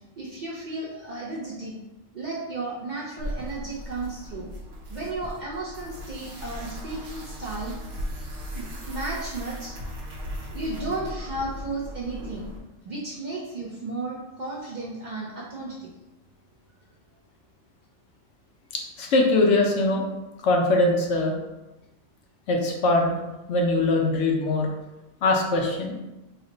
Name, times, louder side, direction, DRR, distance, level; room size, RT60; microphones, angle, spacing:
voice 1, 0.2-1.7 2.1-4.5 4.9-7.8 8.5-9.8 10.5-12.5 12.8-15.9, right 2 dB, 55° right, -5 dB, 0.5 m, -34 dB
sound 1, 3.2-12.6, equal, 85° right, 1.1 m, -37 dB
voice 2, 18.7-20.1 20.4-21.4 22.5-23.2 23.5-24.7 25.2-26.0, left 2 dB, 75° left, 1 dB, 0.9 m, -22 dB
3.1 x 2.1 x 3.8 m, 1.0 s
omnidirectional pair, 1.3 m